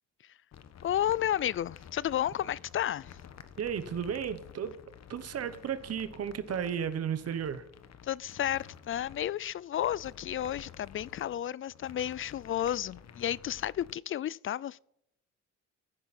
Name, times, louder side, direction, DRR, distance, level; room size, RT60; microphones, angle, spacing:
sound 1, 0.5-13.9, left 8 dB, 60° left, 1.3 m, -51 dB
voice 1, 0.8-3.2 8.0-14.8, left 11 dB, 45° left, 0.4 m, -32 dB
voice 2, 3.6-4.8 5.1-7.7, right 8 dB, 55° right, 1.2 m, -34 dB
14.0 x 10.0 x 4.3 m
cardioid pair, 90°, 30 cm